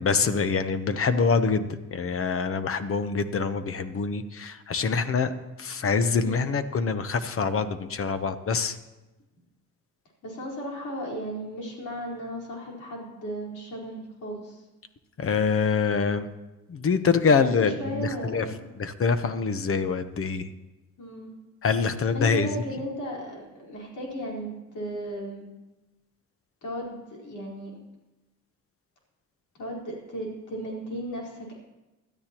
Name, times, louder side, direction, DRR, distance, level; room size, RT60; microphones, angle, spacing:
voice 1, 0.0-5.3 5.6-8.8 15.2-16.3 16.7-18.5 18.8-20.5 21.6-22.6, left 5 dB, 45° left, 11 dB, 0.9 m, -25 dB
voice 2, 6.1-6.5 10.2-14.6 17.3-18.6 21.0-21.4 22.1-25.5 26.6-27.7 29.6-31.6, right 1 dB, 75° left, -3 dB, 4.4 m, -35 dB
20.0 x 12.5 x 3.0 m, 1.1 s
cardioid pair, 90°, 30 cm